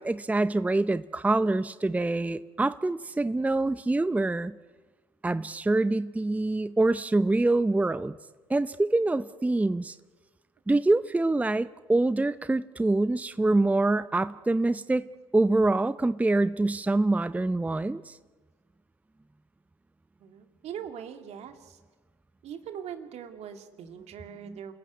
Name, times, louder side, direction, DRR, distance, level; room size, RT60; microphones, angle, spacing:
voice 1, 0.0-4.5 5.2-8.2 8.5-10.0 10.7-15.1 15.3-18.2 24.4-24.6, right 2 dB, 10° right, 15 dB, 0.6 m, -25 dB
voice 2, 20.2-21.8 22.4-24.7, right 8 dB, 60° right, 6 dB, 2.3 m, -41 dB
28.0 x 15.0 x 9.4 m, 1.4 s
hypercardioid pair, 60°, 12 cm